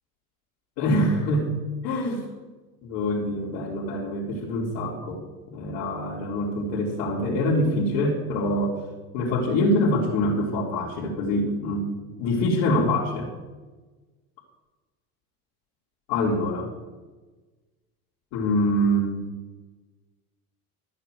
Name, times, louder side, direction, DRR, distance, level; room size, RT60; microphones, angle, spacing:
voice 1, 0.8-1.5 1.8-2.3 2.8-5.2 5.5-8.8 9.1-11.9 12.2-13.3 16.1-16.7 18.3-19.2, left 1 dB, 65° left, -6 dB, 3.8 m, -25 dB
14.0 x 6.8 x 7.9 m, 1.2 s
hypercardioid pair, 95°, 46 cm